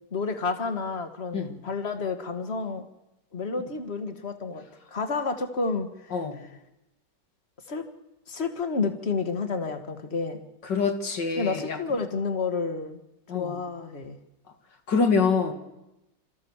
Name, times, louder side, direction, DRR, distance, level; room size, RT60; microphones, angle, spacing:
voice 1, 0.1-2.9 3.3-4.6 4.9-6.5 7.7-7.8 8.3-10.4 11.4-13.0 13.3-14.2, left 4 dB, 35° left, 7 dB, 1.9 m, -30 dB
voice 2, 10.7-11.8 13.3-13.5 14.9-15.5, left 5 dB, 80° left, 5 dB, 2.7 m, -25 dB
28.5 x 14.0 x 7.3 m, 0.95 s
omnidirectional pair, 1.9 m